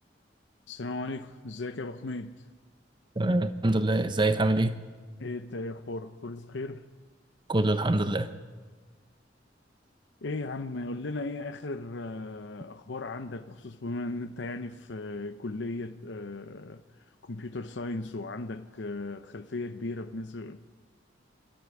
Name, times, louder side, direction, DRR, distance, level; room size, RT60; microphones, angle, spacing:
voice 1, 0.7-2.4 5.2-6.9 10.2-16.8 17.2-20.7, left 2 dB, 80° left, 0.8 m, -36 dB
voice 2, 3.2-4.8 7.5-8.3, right 2 dB, 25° right, 0.8 m, -25 dB
24.5 x 13.0 x 8.4 m
head